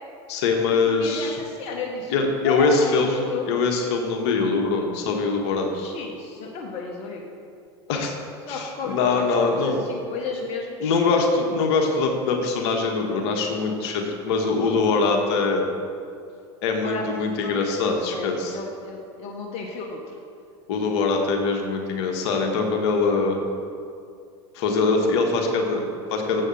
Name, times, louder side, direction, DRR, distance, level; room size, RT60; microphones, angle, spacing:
voice 1, 0.3-1.4 2.1-5.7 7.9-8.1 8.5-9.8 10.8-15.7 16.6-18.6 20.7-23.4 24.5-26.4, left 4 dB, 70° left, 2 dB, 1.4 m, -23 dB
voice 2, 0.9-2.1 2.4-3.5 5.7-7.2 8.5-11.0 16.7-20.0, left 4 dB, 50° left, 0 dB, 1.2 m, -33 dB
7.6 x 6.3 x 7.1 m, 2.4 s
hypercardioid pair, 95°, 15 cm